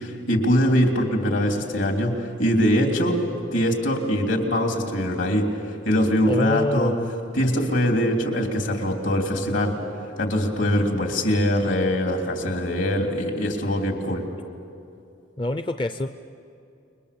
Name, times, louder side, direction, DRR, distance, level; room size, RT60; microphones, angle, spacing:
voice 1, 0.0-3.2 3.5-6.9 7.3-9.8 10.2-14.3, equal, 70° left, 2 dB, 3.3 m, -22 dB
voice 2, 6.3-7.1 15.4-16.1, left 1 dB, 25° left, 8 dB, 0.5 m, -25 dB
29.5 x 22.0 x 6.9 m, 2.6 s
head